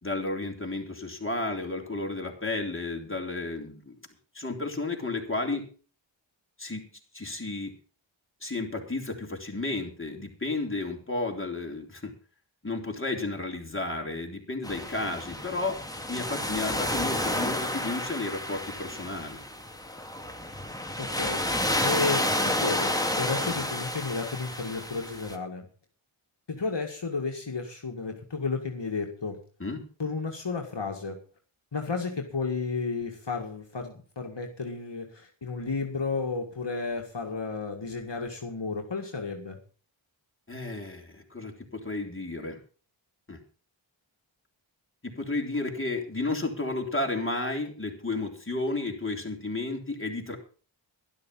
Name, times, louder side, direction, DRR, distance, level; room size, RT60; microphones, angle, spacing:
voice 1, 0.0-4.0 4.3-5.7 6.6-6.9 7.1-7.7 8.4-12.1 12.6-15.8 16.1-19.4 23.4-23.7 29.6-29.8 40.5-42.6 43.3-43.4 45.0-50.4, left 2 dB, 25° left, 1 dB, 3.7 m, -32 dB
sound 1, 14.6-25.3, left 1 dB, 5° left, 2.4 m, -30 dB
voice 2, 21.0-21.4 21.8-25.7 26.5-29.4 30.0-31.2 31.7-39.6, left 4 dB, 60° left, 2 dB, 2.1 m, -32 dB
12.5 x 12.0 x 5.5 m, 0.39 s
wide cardioid pair, 45°, 49 cm